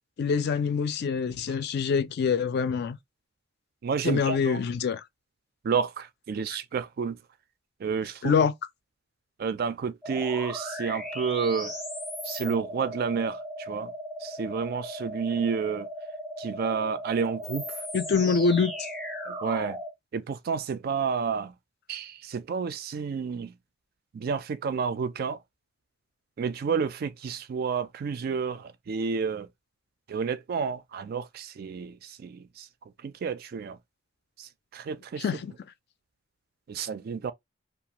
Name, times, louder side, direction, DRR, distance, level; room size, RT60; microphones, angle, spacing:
voice 1, 0.2-3.0 4.1-5.0 8.2-8.5 17.9-18.7 35.2-35.5, left 5 dB, 60° left, 0.4 m, -25 dB
voice 2, 3.8-4.6 5.6-7.2 7.8-8.3 9.4-11.7 12.2-13.9 14.2-15.9 16.4-17.8 19.3-19.8 20.1-21.5 21.9-23.5 24.1-25.4 26.4-29.5 30.1-32.7 33.0-33.8 34.4-35.3 36.7-37.3, right 6 dB, 55° right, 0.3 m, -30 dB
sound 1, 10.0-19.9, equal, ahead, 0.5 m, -37 dB
2.4 x 2.3 x 2.8 m
head